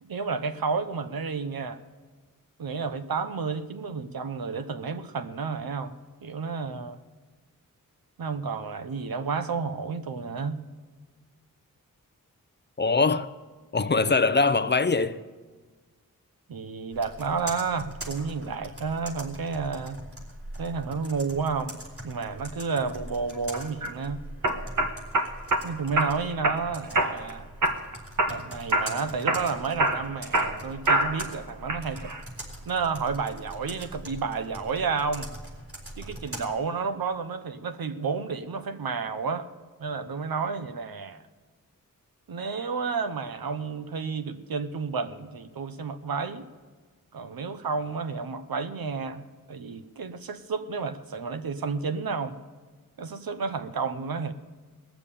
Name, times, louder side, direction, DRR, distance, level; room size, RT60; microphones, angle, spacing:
voice 1, 0.0-1.8 2.6-5.9 6.2-7.0 8.2-10.6 16.5-20.0 20.6-24.2 25.6-27.5 28.3-32.1 32.7-35.3 36.0-39.5 39.8-41.2 42.3-46.4 47.1-49.2 49.5-52.4 53.0-54.3, right 5 dB, 85° right, 0.9 m, -31 dB
voice 2, 12.8-13.3 13.7-15.2, left 4 dB, 30° left, 0.6 m, -22 dB
Computer keyboard, 16.9-36.4, right 1 dB, 40° right, 4.0 m, -42 dB
sound 1, 23.5-23.9 24.4-25.6 26.0-26.6 26.9-27.3 27.6-28.4 28.7-29.0 29.3-31.3 31.7-32.2, right 2 dB, 60° right, 1.3 m, -25 dB
19.0 x 7.2 x 8.5 m
wide cardioid pair, 90°, 34 cm